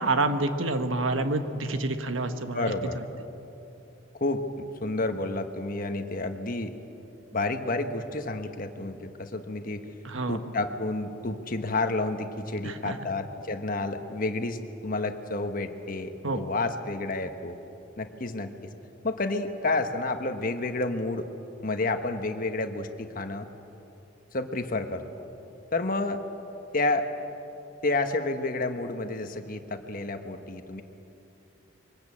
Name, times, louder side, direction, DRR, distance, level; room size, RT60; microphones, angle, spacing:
voice 1, 0.0-3.0 10.0-10.4 12.6-13.0 16.2-16.5, right 2 dB, 75° right, 8 dB, 1.4 m, -28 dB
voice 2, 2.5-3.0 4.2-4.4 4.8-6.7 7.3-9.8 10.3-17.6 18.0-18.7 19.0-21.3 21.6-23.5 24.3-25.2 25.7-26.2 26.7-27.1 27.8-30.8, left 2 dB, 45° left, 7 dB, 1.3 m, -30 dB
23.0 x 19.5 x 8.6 m, 3.0 s
head